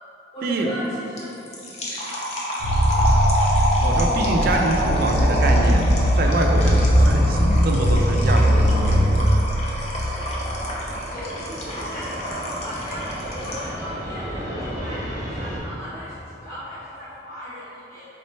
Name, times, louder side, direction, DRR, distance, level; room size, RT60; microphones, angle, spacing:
voice 1, 0.3-1.3 2.8-3.2 11.1-18.1, equal, 15° left, -15 dB, 0.9 m, -36 dB
sound 1, 1.2-13.8, equal, 35° left, 0.6 m, -28 dB
sound 2, 2.6-10.1, equal, 80° left, 1.2 m, -19 dB
voice 2, 3.8-5.9 6.2-9.3, right 2 dB, 55° right, 2 dB, 0.4 m, -25 dB
Fixed-wing aircraft airplane, 9.8-15.6, equal, 20° right, 0.8 m, -34 dB
4.1 x 3.7 x 3.1 m, 2.9 s
head